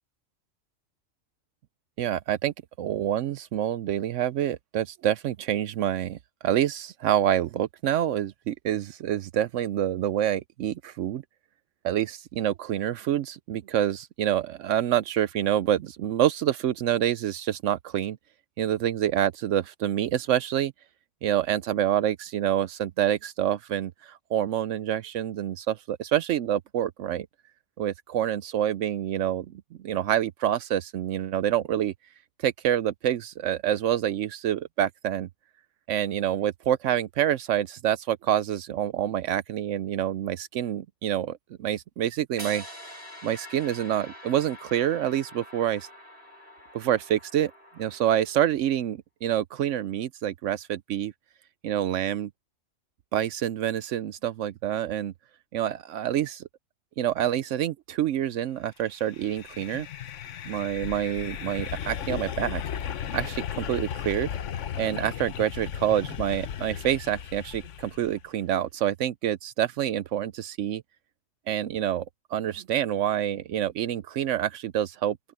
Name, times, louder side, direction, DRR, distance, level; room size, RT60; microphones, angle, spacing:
voice 1, 2.0-6.2 6.4-11.2 11.8-18.2 18.6-20.7 21.2-27.3 27.8-31.9 32.4-35.3 35.9-42.6 43.2-45.9 46.7-47.5 47.8-51.1 51.6-52.3 53.1-55.1 55.5-56.4 57.0-59.9 60.5-62.6 63.1-64.3 64.8-70.8 71.5-72.0 72.3-75.2, right 11 dB, 75° right, 0.9 m, -27 dB
sound 1, 42.4-48.5, equal, 55° right, 5.8 m, -45 dB
sound 2, 59.0-68.2, left 9 dB, 70° left, 1.2 m, -35 dB
open air
omnidirectional pair, 1.3 m